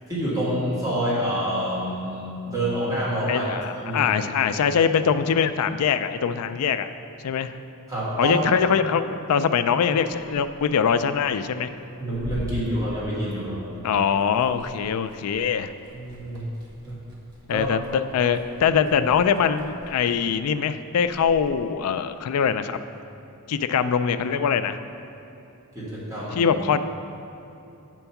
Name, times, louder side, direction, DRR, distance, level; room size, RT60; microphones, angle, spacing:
voice 1, 0.1-3.5 3.8-4.0 7.9-8.4 12.0-13.6 15.9-16.5 16.9-17.0 17.5-17.7 25.8-26.5, right 1 dB, 15° right, -9 dB, 1.8 m, -27 dB
voice 2, 3.3-6.9 7.2-7.6 8.2-11.7 13.8-15.7 17.5-22.8 23.5-24.8 26.3-26.8, left 7 dB, 85° left, 10 dB, 0.4 m, -23 dB
Liquid, 11.7-13.7 13.9-21.5, equal, 50° right, 1.3 m, -43 dB
7.9 x 4.5 x 5.8 m, 2.9 s
head